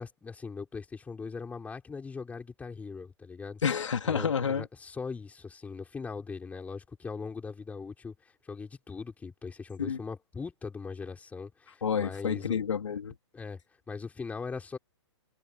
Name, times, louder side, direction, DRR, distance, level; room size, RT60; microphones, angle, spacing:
voice 1, 0.0-3.6 4.0-8.1 8.4-12.6 13.3-13.6 13.9-14.8, left 5 dB, 10° left, 6.2 m, -40 dB
voice 2, 3.6-4.7 9.8-10.0 11.8-13.1, left 7 dB, 85° left, 3.4 m, -29 dB
hypercardioid pair, 145°, 15 cm